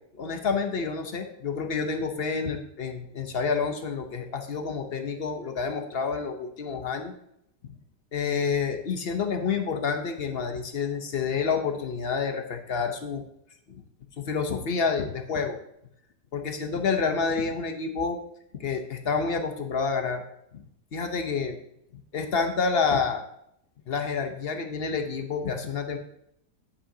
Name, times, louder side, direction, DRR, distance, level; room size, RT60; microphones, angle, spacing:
voice 1, 0.1-7.1 8.1-13.2 13.7-13.8 14.2-15.6 16.3-18.2 18.5-20.2 20.5-20.6 20.9-21.6 22.1-23.2 23.9-26.0, left 5 dB, 50° left, 5 dB, 0.8 m, -28 dB
9.8 x 8.5 x 2.7 m, 0.75 s
omnidirectional pair, 1.8 m